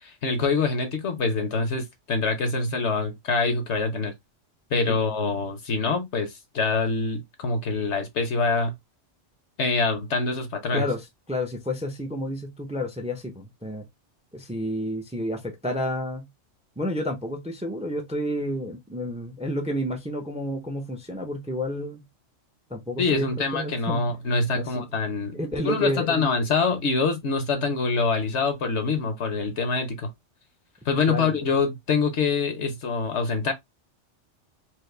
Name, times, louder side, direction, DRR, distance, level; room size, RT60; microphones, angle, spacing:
voice 1, 0.0-4.1 4.7-8.7 9.6-10.9 23.0-30.1 30.9-33.5, left 4 dB, 70° left, 1.2 m, -25 dB
voice 2, 10.7-13.8 14.3-16.3 16.8-22.0 22.7-24.0 24.6-24.8 25.3-26.3 31.1-31.3, left 1 dB, 5° right, 0.6 m, -30 dB
4.6 x 2.1 x 3.2 m
omnidirectional pair, 1.2 m